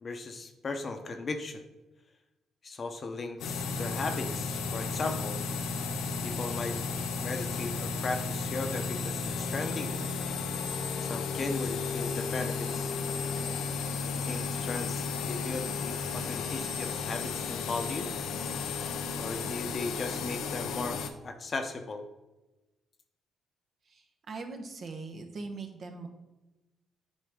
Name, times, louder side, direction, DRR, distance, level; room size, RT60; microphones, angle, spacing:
voice 1, 0.0-1.6 2.6-5.4 6.2-6.8 7.2-9.9 11.0-13.0 14.1-18.1 19.2-21.0 21.2-22.1, left 3 dB, 40° left, 6 dB, 0.8 m, -37 dB
sound 1, 3.4-21.1, left 5 dB, 80° left, 0.6 m, -33 dB
voice 2, 23.9-26.1, right 3 dB, 50° right, 4 dB, 1.1 m, -41 dB
8.9 x 5.0 x 3.6 m, 1.1 s
cardioid pair, 90°, 0 cm